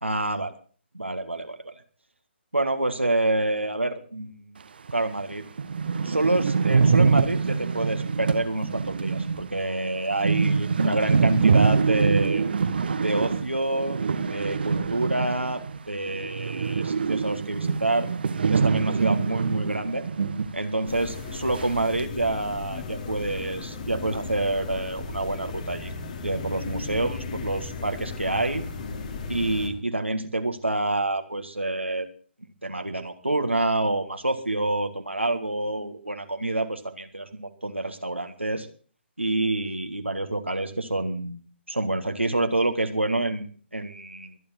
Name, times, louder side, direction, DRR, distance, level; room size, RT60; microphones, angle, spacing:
voice 1, 0.0-0.5 0.9-1.7 2.5-4.4 4.9-5.4 6.0-12.4 13.0-18.1 18.5-20.0 20.5-25.9 26.2-28.6 29.3-32.1 32.6-38.7 39.2-41.4 41.7-44.4, right 2 dB, 80° right, 6 dB, 1.8 m, -27 dB
sound 1, 4.9-5.0 5.3-5.4 5.6-15.8 16.1-20.6 20.8-20.9 21.6-22.0, right 5 dB, 55° right, 1.2 m, -24 dB
sound 2, 20.9-29.7, left 3 dB, 40° left, 2.9 m, -35 dB
24.0 x 10.0 x 4.4 m, 0.42 s
figure-of-eight pair, 135°, 6 cm